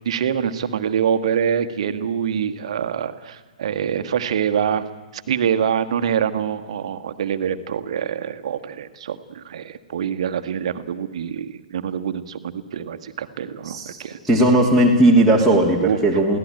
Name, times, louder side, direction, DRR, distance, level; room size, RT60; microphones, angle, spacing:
voice 1, 0.0-4.9 5.1-14.2 15.8-16.0, right 8 dB, 50° right, 10 dB, 1.4 m, -25 dB
voice 2, 13.6-14.0 14.2-16.4, right 1 dB, ahead, 0 dB, 2.5 m, -16 dB
23.5 x 16.5 x 8.9 m, 1.3 s
figure-of-eight pair, 120°, 4 cm